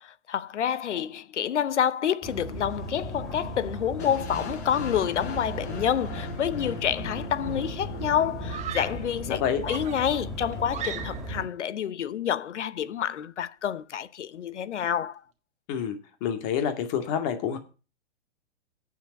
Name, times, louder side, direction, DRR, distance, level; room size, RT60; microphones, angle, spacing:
voice 1, 0.0-15.2, left 9 dB, 90° left, 0.9 m, -28 dB
sound 1, 2.2-11.4, right 1 dB, ahead, 3.5 m, -37 dB
sound 2, 4.0-10.0, left 3 dB, 65° left, 4.7 m, -40 dB
Screaming, 7.2-7.4 8.5-9.1 9.7-11.4, right 9 dB, 20° right, 1.3 m, -38 dB
voice 2, 9.3-9.6 15.7-17.6, left 8 dB, 40° left, 2.3 m, -28 dB
8.9 x 7.0 x 7.6 m
hypercardioid pair, 135°, 34 cm